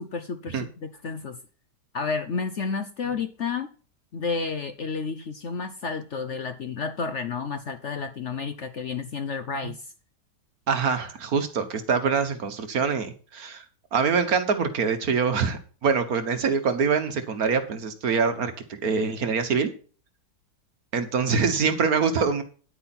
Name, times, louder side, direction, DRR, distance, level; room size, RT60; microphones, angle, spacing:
voice 1, 0.0-1.4 1.9-3.7 4.1-9.9, left 5 dB, 50° left, 9 dB, 0.9 m, -31 dB
voice 2, 10.7-13.6 13.9-19.7 20.9-22.4, right 5 dB, 60° right, 9 dB, 1.7 m, -24 dB
10.0 x 9.4 x 4.3 m, 0.38 s
omnidirectional pair, 1.9 m